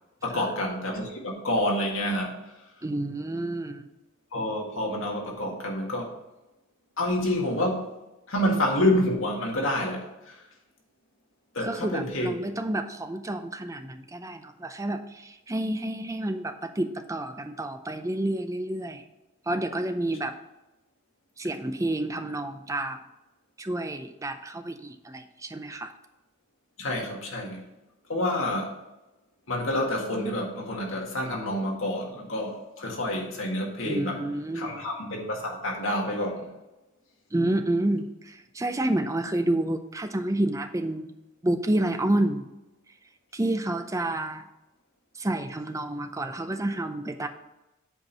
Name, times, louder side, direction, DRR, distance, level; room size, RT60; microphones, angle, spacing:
voice 1, 0.2-2.4 4.3-6.2 7.0-7.9 8.3-10.4 11.5-12.3 26.8-27.7 28.1-28.8 29.5-34.2 34.5-36.5, left 1 dB, 65° left, -1 dB, 1.8 m, -28 dB
voice 2, 2.8-3.9 11.6-19.0 19.5-20.3 21.4-23.0 23.6-25.9 33.8-34.8 37.3-41.1 41.4-42.5 43.3-44.4 45.2-47.3, right 1 dB, 15° right, 8 dB, 0.5 m, -29 dB
7.9 x 4.5 x 5.4 m, 0.99 s
head